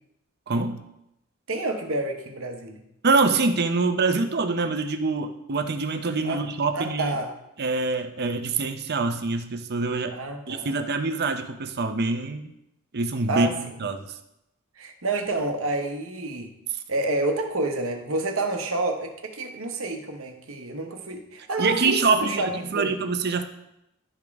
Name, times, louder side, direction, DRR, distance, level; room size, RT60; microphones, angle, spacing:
voice 1, 0.5-0.8 3.0-7.2 7.6-10.2 10.5-12.5 12.9-13.5 13.8-14.1 21.6-23.4, right 3 dB, 50° right, 8 dB, 0.7 m, -25 dB
voice 2, 1.5-2.8 6.2-6.4 6.7-7.3 10.1-10.8 13.3-13.5 14.8-16.5 16.9-22.9, right 2 dB, 65° right, 5 dB, 1.0 m, -29 dB
12.0 x 5.2 x 3.5 m, 0.84 s
head